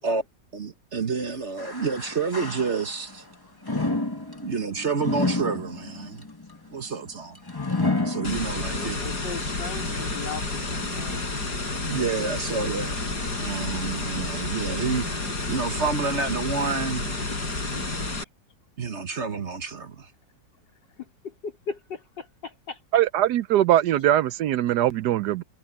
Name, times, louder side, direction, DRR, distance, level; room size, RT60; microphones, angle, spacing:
voice 1, 0.5-3.2 4.4-6.2 6.7-7.4 8.0-9.0 11.9-13.0 13.4-15.2 15.5-17.2 18.8-20.1, right 5 dB, 45° right, 1.4 m, -29 dB
sound 1, 1.6-3.2 3.6-8.9 9.4-9.5 10.3-10.4, left 2 dB, 15° left, 1.9 m, -30 dB
sound 2, 8.2-18.2, left 3 dB, 65° left, 5.4 m, -30 dB
voice 2, 8.8-11.2 14.0-14.1 21.0-22.8, left 5 dB, 90° left, 4.8 m, -38 dB
voice 3, 22.9-25.4, right 12 dB, 75° right, 1.1 m, -21 dB
omnidirectional pair, 1.9 m